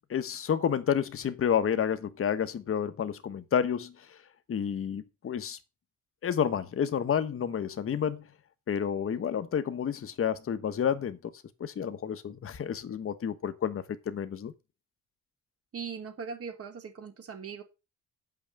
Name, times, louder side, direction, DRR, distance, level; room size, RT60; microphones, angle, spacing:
voice 1, 0.1-4.2 4.5-5.6 6.2-8.2 8.7-11.2 11.6-14.5, left 8 dB, 45° left, 1.2 m, -30 dB
voice 2, 15.7-17.6, right 6 dB, 50° right, 2.8 m, -40 dB
8.0 x 6.0 x 6.6 m
cardioid pair, 90°, 30 cm